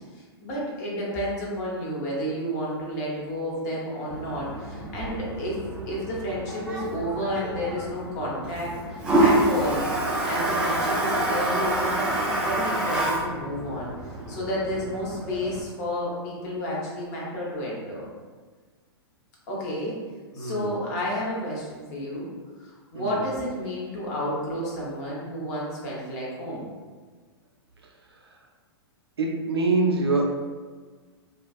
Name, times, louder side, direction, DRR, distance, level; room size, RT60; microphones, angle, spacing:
voice 1, 0.4-5.6 5.9-9.8 10.2-13.9 14.3-18.0 19.5-20.0 20.3-22.3 22.6-26.6, equal, 40° left, -5 dB, 0.8 m, -31 dB
Toilet flush, 4.1-15.6, right 1 dB, 5° right, 0.3 m, -27 dB
voice 2, 20.3-20.8 22.9-23.3 28.1-28.4 29.2-30.2, right 3 dB, 70° right, 0 dB, 0.4 m, -25 dB
2.3 x 2.2 x 2.4 m, 1.4 s
figure-of-eight pair, 105°, 14 cm